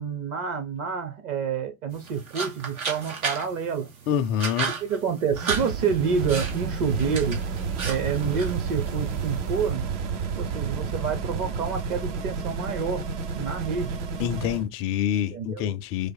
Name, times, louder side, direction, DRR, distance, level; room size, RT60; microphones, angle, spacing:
voice 1, 0.0-3.9 4.8-7.4 7.8-9.9 10.4-13.1 13.3-14.0 15.3-15.6, right 6 dB, 35° right, 0.9 m, -28 dB
sound 1, 1.9-9.7, right 5 dB, 85° right, 2.0 m, -35 dB
voice 2, 4.1-4.7 14.2-16.1, left 9 dB, 35° left, 0.4 m, -26 dB
sound 2, 5.3-14.7, right 5 dB, 60° right, 1.1 m, -31 dB
4.9 x 2.5 x 2.2 m
hypercardioid pair, 110°, 41 cm